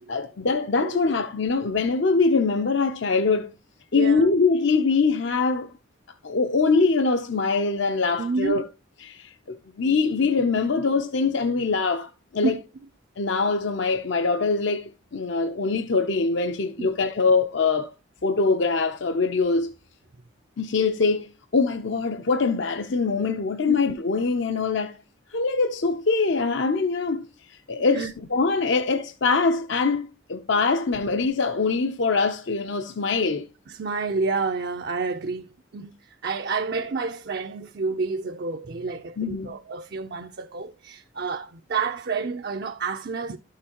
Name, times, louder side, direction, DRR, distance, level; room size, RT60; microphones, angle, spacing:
voice 1, 0.1-3.5 3.9-5.7 6.2-8.6 9.0-12.6 13.2-17.9 18.2-19.7 20.6-25.0 25.3-33.5 39.2-39.5, left 4 dB, 60° left, 0.6 m, -23 dB
voice 2, 3.9-4.3 8.2-8.6 12.4-12.6 16.8-16.9 23.7-23.8 27.9-28.1 33.7-43.4, right 4 dB, 50° right, 0.5 m, -29 dB
12.0 x 6.6 x 2.9 m
head